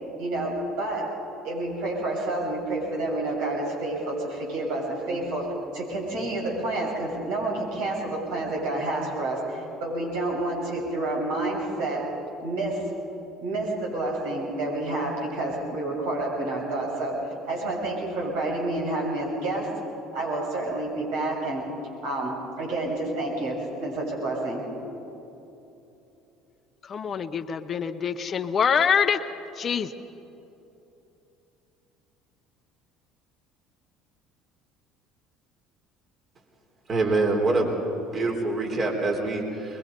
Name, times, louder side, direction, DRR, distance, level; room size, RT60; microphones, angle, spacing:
voice 1, 0.2-1.0 1.4-5.5 5.7-12.0 12.4-12.8 13.4-17.2 17.5-19.7 20.1-21.7 22.0-24.6, right 2 dB, 75° right, -3 dB, 6.9 m, -29 dB
voice 2, 26.8-29.2 29.6-29.9, left 7 dB, 40° left, 10 dB, 1.0 m, -25 dB
voice 3, 36.9-37.7 38.1-39.8, right 3 dB, 40° right, 1 dB, 4.2 m, -25 dB
23.0 x 22.0 x 5.4 m, 2.9 s
hypercardioid pair, 70°, 0 cm